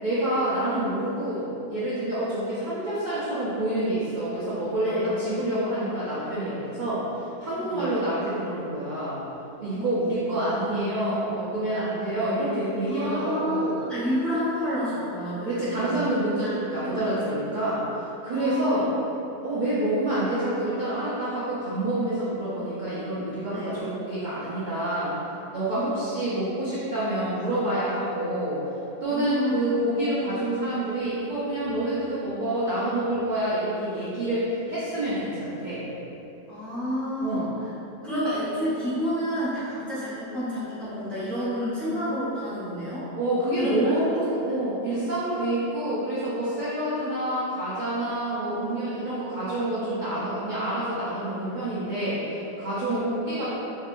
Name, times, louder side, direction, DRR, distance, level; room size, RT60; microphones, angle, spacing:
voice 1, 0.0-9.2 9.6-13.8 15.4-18.9 19.4-25.2 25.5-28.6 29.0-35.8 37.2-37.5 43.2-53.5, right 1 dB, 75° right, -10 dB, 0.4 m, -27 dB
voice 2, 12.9-16.0 16.4-16.6 16.8-17.1 18.3-18.8 23.5-23.8 25.7-26.0 29.1-29.6 29.9-30.4 36.5-37.5 38.0-43.1 43.6-43.7 44.4-44.6 47.3-47.4 52.8-53.3, equal, ahead, -12 dB, 0.7 m, -30 dB
3.5 x 3.1 x 2.5 m, 2.9 s
omnidirectional pair, 1.6 m